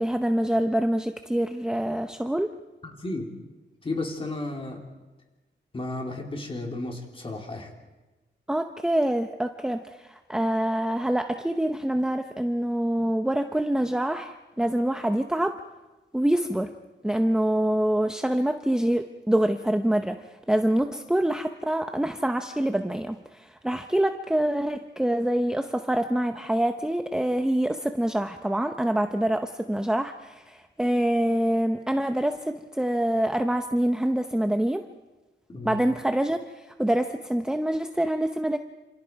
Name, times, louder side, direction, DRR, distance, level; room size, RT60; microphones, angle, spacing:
voice 1, 0.0-2.5 8.5-15.6 16.1-16.7 17.0-34.8 35.6-38.6, right 1 dB, 5° right, 6 dB, 0.7 m, -25 dB
voice 2, 2.8-3.3 3.8-4.8 5.7-7.7 35.5-35.8, left 2 dB, 30° left, 1 dB, 3.5 m, -33 dB
28.5 x 27.5 x 4.7 m, 1.1 s
wide cardioid pair, 175°, 19 cm